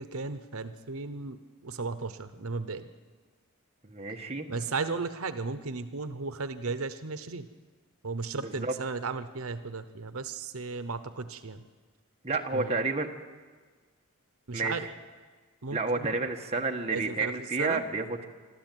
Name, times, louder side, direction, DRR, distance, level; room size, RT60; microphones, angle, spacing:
voice 1, 0.0-1.4 1.6-2.9 4.5-7.4 8.0-11.6 12.5-12.7 14.5-14.9 15.6-16.1 16.9-17.3 17.6-17.8, right 4 dB, 75° right, 11 dB, 1.0 m, -35 dB
voice 2, 3.8-4.5 8.4-8.7 12.2-13.1 14.5-14.7 15.7-18.3, right 3 dB, 30° right, 2 dB, 1.5 m, -30 dB
25.5 x 13.0 x 9.3 m, 1.5 s
head